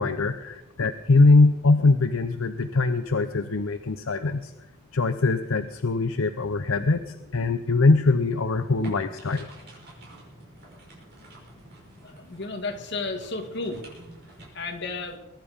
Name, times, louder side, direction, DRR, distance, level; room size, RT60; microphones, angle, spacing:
voice 1, 0.0-4.5 4.9-9.5, left 3 dB, 70° left, 9 dB, 0.7 m, -22 dB
sound 1, 8.8-14.5, right 1 dB, 50° right, 5.9 m, -47 dB
voice 2, 12.0-13.9 14.5-15.2, left 3 dB, 50° left, 3 dB, 2.1 m, -33 dB
22.0 x 11.0 x 5.2 m, 0.99 s
head